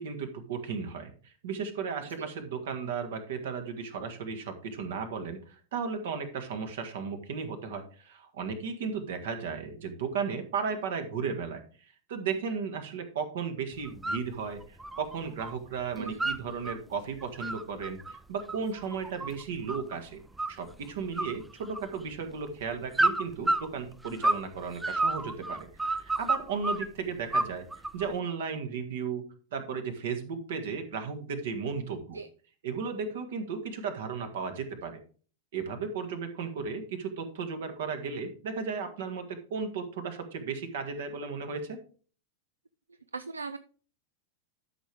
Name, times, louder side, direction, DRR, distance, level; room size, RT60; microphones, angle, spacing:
voice 1, 0.0-20.2 20.5-27.6 27.9-29.2 29.5-32.2 32.6-35.0 35.5-41.8, right 5 dB, 55° right, 7 dB, 1.8 m, -35 dB
sound 1, 13.8-14.3 14.6-15.6 15.8-16.8 17.2-20.0 20.4-20.8 21.2-22.1 22.9-24.5 24.8-26.9 27.3-28.1, right 2 dB, 5° right, 0.5 m, -30 dB
voice 2, 43.1-43.6, right 4 dB, 75° right, 12 dB, 0.4 m, -38 dB
12.0 x 6.3 x 3.5 m, 0.40 s
figure-of-eight pair, 90°, 0 cm